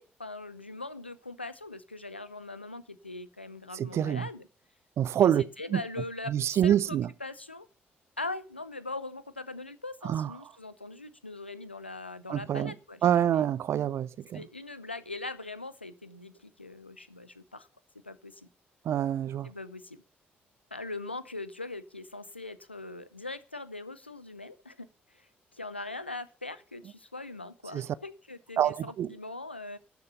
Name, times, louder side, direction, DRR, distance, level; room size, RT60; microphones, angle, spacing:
voice 1, 0.0-4.5 5.2-7.7 8.2-13.4 14.3-17.7 18.0-18.5 19.4-20.0 20.7-25.3 25.5-29.8, left 2 dB, 90° left, 0.5 m, -41 dB
voice 2, 3.7-4.3 5.0-5.4 5.7-5.8 6.3-7.1 10.0-10.3 12.3-12.7 13.0-14.4 18.8-19.5 27.7-27.9 28.6-29.1, right 10 dB, 50° right, 0.5 m, -26 dB
12.5 x 6.8 x 6.8 m
figure-of-eight pair, 45°, 6 cm